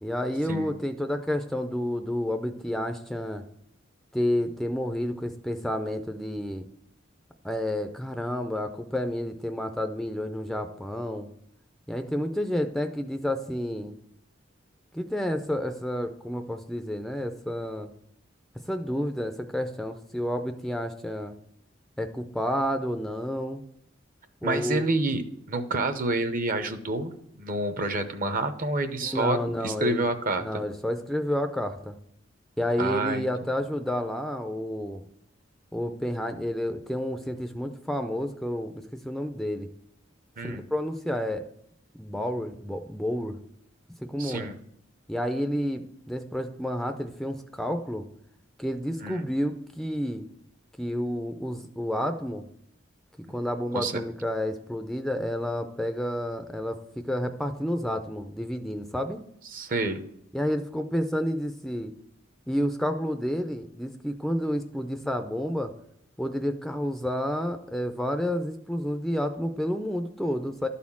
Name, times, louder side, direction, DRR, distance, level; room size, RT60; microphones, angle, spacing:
voice 1, 0.0-3.4 4.1-6.7 7.4-11.3 11.9-14.0 14.9-17.9 18.7-21.4 22.0-23.6 24.4-24.8 29.0-30.1 30.4-32.0 32.6-35.0 35.7-39.7 40.4-41.4 41.9-43.4 44.0-44.5 45.1-48.1 48.6-50.2 50.8-52.4 53.2-59.2 60.3-61.9 62.5-65.7 66.2-70.7, equal, ahead, 7 dB, 0.4 m, -30 dB
voice 2, 24.4-25.2 25.5-27.1 27.4-29.4 29.6-30.4 32.8-33.2 40.4-40.6 44.2-44.6 49.0-49.3 53.7-53.9 59.5-60.0, right 2 dB, 45° right, 9 dB, 0.8 m, -28 dB
12.0 x 4.2 x 7.2 m, 0.73 s
head